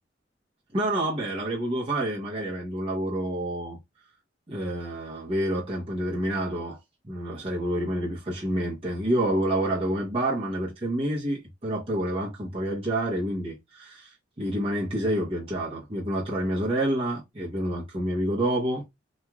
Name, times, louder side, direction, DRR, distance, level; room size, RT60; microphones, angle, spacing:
voice 1, 0.7-3.8 4.5-6.8 7.0-19.0, right 1 dB, 30° right, 0.8 m, -28 dB
3.0 x 2.3 x 2.3 m
head